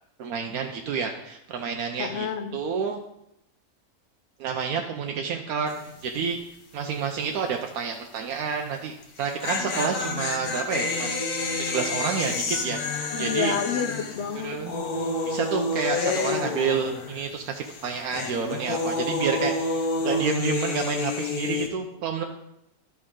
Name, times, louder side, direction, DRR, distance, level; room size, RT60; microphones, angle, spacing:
voice 1, 0.2-3.0 4.4-5.7 6.0-6.4 6.7-11.2 11.6-13.6 14.4-14.7 15.2-22.2, right 6 dB, 80° right, 3 dB, 1.2 m, -29 dB
voice 2, 2.0-2.5 13.1-14.6, left 6 dB, 55° left, 8 dB, 0.9 m, -29 dB
sound 1, 5.7-6.0 6.3-6.4 9.0-17.4 17.7-21.7, left 3 dB, 90° left, 1.6 m, -29 dB
11.0 x 5.9 x 3.7 m, 0.81 s
omnidirectional pair, 1.5 m